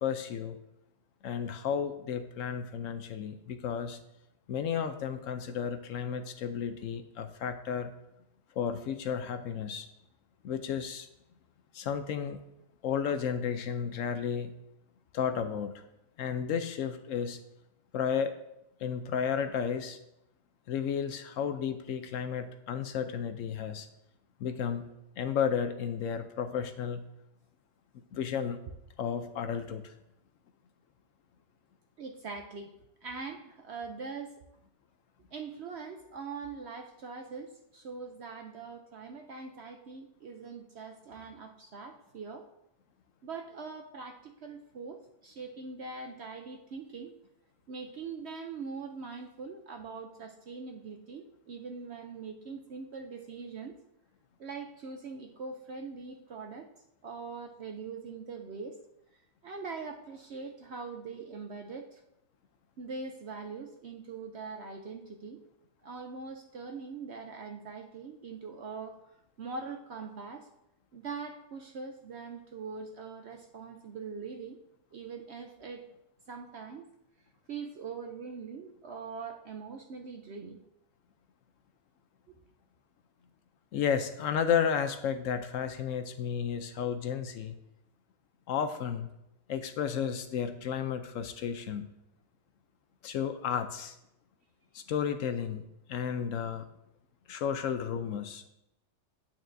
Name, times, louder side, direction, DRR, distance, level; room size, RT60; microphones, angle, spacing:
voice 1, 0.0-0.6 1.2-4.0 4.5-7.9 8.6-9.9 10.4-11.1 11.7-12.4 12.8-14.5 15.1-15.8 16.2-17.4 17.9-18.3 18.8-20.0 20.7-23.9 24.4-24.9 25.2-27.1 28.1-28.6 29.0-29.9 83.7-87.6 88.5-89.1 89.5-91.9 93.0-94.0 94.7-95.6 95.9-96.7 97.3-98.5, left 7 dB, 70° left, 9 dB, 0.8 m, -32 dB
voice 2, 32.0-32.7 33.0-34.4 35.3-42.5 43.2-47.2 47.7-53.7 54.4-56.7 57.0-58.8 59.4-62.0 62.8-65.4 65.8-70.5 70.9-74.6 74.9-75.8 76.3-76.9 77.5-80.6, right 4 dB, 65° right, 4 dB, 0.6 m, -42 dB
8.9 x 8.6 x 2.6 m, 0.85 s
omnidirectional pair, 1.8 m